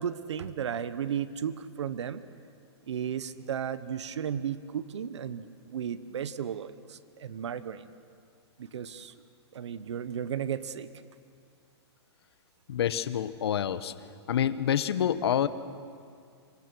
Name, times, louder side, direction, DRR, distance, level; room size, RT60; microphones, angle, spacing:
voice 1, 0.0-2.2 2.9-7.9 8.6-9.1 9.5-10.9, right 8 dB, 80° right, 14 dB, 1.1 m, -34 dB
voice 2, 12.7-13.9 14.3-15.5, left 9 dB, 65° left, 13 dB, 1.1 m, -27 dB
27.5 x 24.0 x 6.2 m, 2.3 s
hypercardioid pair, 170°, 15 cm